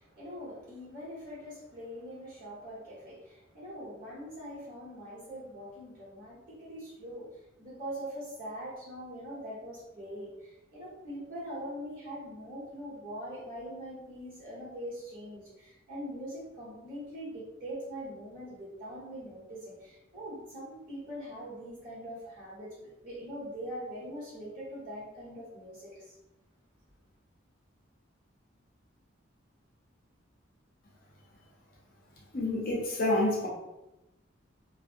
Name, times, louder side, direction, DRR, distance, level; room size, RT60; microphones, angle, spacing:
voice 1, 0.0-7.3 7.6-26.2, equal, 45° right, -8 dB, 1.2 m, -42 dB
voice 2, 32.3-33.5, left 1 dB, 45° left, -3 dB, 0.5 m, -28 dB
2.5 x 2.1 x 2.5 m, 0.95 s
head